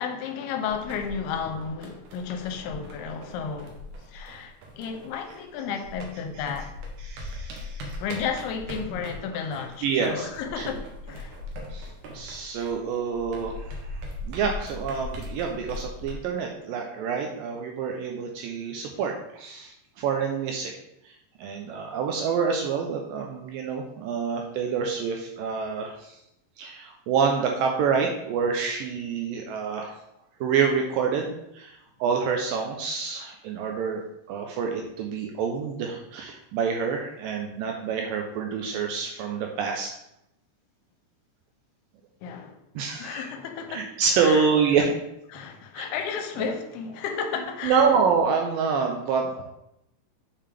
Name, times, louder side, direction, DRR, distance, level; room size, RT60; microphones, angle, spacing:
voice 1, 0.0-6.7 8.0-11.4 42.2-42.6 43.0-43.9 44.2-44.5 44.8-44.9 45.3-47.9, left 6 dB, 85° left, 2.6 m, -33 dB
sound 1, 0.7-5.5 5.8-16.1, left 1 dB, 65° right, 2.1 m, -40 dB
voice 2, 7.0-8.0 9.8-10.3 10.6-10.7 11.7-20.7 21.0-21.1 21.4-26.2 26.6-30.0 30.4-39.9 42.8-43.3 43.7-44.9 45.8-45.9 46.4-46.5 47.6-49.5, right 6 dB, 85° right, 2.1 m, -27 dB
6.5 x 5.7 x 3.4 m
omnidirectional pair, 4.5 m